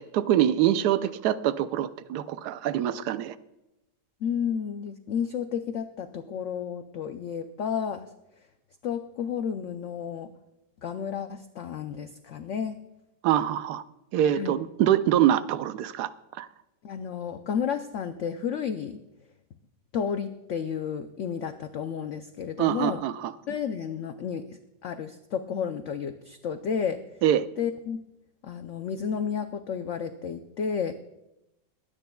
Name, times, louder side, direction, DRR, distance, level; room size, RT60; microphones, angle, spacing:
voice 1, 0.0-3.4 13.2-13.8 14.1-16.1 16.4-16.5 22.6-23.3 27.2-27.4, right 11 dB, 75° right, 13 dB, 1.1 m, -24 dB
voice 2, 4.2-8.1 8.8-10.3 10.8-12.8 14.4-14.6 16.8-19.0 19.9-23.0 23.5-27.0 27.6-28.0 28.4-30.9, left 7 dB, 75° left, 7 dB, 0.7 m, -32 dB
23.0 x 9.2 x 2.3 m, 0.92 s
omnidirectional pair, 1.9 m